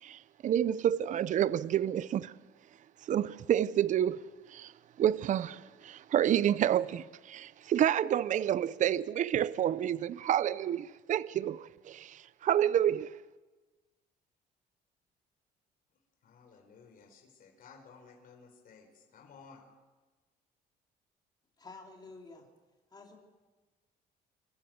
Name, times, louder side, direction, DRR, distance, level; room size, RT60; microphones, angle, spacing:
voice 1, 0.0-2.3 3.1-4.2 4.5-4.7 5.0-13.1, right 10 dB, 50° right, 0.6 m, -29 dB
voice 2, 16.2-19.6, left 5 dB, 55° left, 4.7 m, -56 dB
voice 3, 21.6-22.5 22.9-23.2, left 3 dB, 25° left, 4.0 m, -50 dB
27.5 x 15.0 x 7.9 m
cardioid pair, 110°, 17 cm